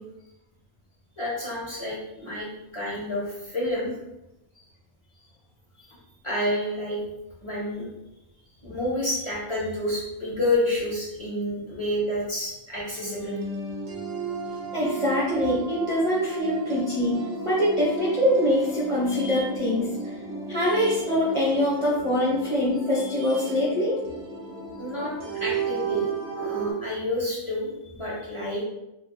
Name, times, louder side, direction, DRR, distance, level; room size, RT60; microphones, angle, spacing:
voice 1, 1.2-2.5 2.7-3.9 6.2-7.0 7.4-7.9 8.6-13.4 24.8-26.1 26.4-28.6, left 1 dB, 25° left, -6 dB, 0.8 m, -29 dB
sound 1, 13.0-26.7, right 4 dB, 75° right, 1.1 m, -34 dB
voice 2, 14.7-17.2 17.4-20.1 20.5-24.0, left 1 dB, 30° right, -8 dB, 0.7 m, -24 dB
2.7 x 2.5 x 3.8 m, 0.91 s
omnidirectional pair, 1.4 m